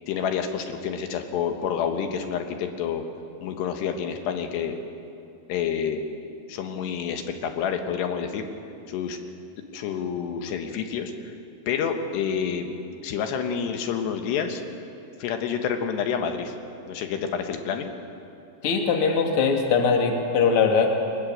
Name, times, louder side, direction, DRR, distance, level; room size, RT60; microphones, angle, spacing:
voice 1, 0.1-3.0 3.4-4.7 5.5-6.0 6.5-8.5 8.9-9.2 9.7-11.3 11.7-12.7 13.0-14.6 15.2-16.6 16.9-17.9, left 7 dB, 85° left, 6 dB, 3.4 m, -28 dB
voice 2, 18.6-20.9, left 5 dB, 45° left, 2 dB, 2.1 m, -21 dB
23.5 x 19.5 x 7.6 m, 2.7 s
omnidirectional pair, 4.8 m